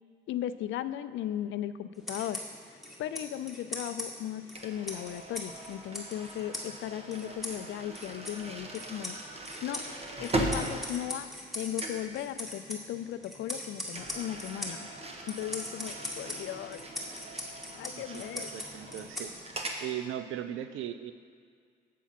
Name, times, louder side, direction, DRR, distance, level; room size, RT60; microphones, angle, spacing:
voice 1, 0.3-2.4 2.7-9.8 10.2-11.3 11.5-14.9 15.3-16.8 17.8-18.5, left 11 dB, 70° left, 13 dB, 0.4 m, -37 dB
sound 1, 2.0-19.7, left 1 dB, ahead, 1.8 m, -42 dB
sound 2, 4.5-11.5 11.8-12.1 13.9-19.8, right 1 dB, 30° right, 1.2 m, -39 dB
voice 2, 17.9-19.4 19.8-21.1, right 11 dB, 85° right, 11 dB, 0.5 m, -38 dB
8.3 x 7.2 x 5.8 m, 2.1 s
cardioid pair, 90°, 20 cm